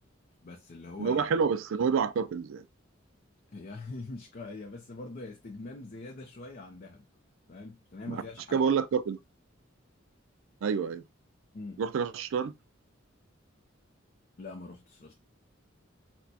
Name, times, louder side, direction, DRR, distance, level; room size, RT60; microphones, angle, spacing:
voice 1, 0.4-1.3 3.5-7.1 7.5-8.7 11.5-11.8 14.4-15.1, left 3 dB, 45° left, 0.5 m, -43 dB
voice 2, 1.0-2.7 8.1-8.2 8.5-9.2 10.6-11.0 11.8-12.5, right 6 dB, 80° right, 0.4 m, -28 dB
4.4 x 2.1 x 2.7 m
head